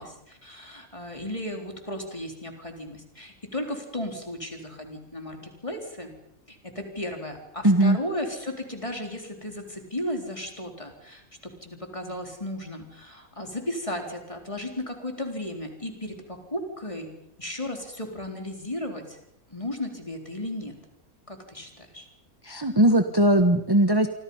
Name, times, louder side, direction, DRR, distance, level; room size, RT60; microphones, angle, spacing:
voice 1, 0.0-6.2 6.5-19.2 19.5-20.8 21.3-22.1, left 1 dB, 20° left, 3 dB, 4.1 m, -35 dB
voice 2, 7.6-8.0 22.4-24.1, right 1 dB, 15° right, 7 dB, 1.3 m, -19 dB
28.0 x 24.5 x 5.6 m, 0.78 s
omnidirectional pair, 1.5 m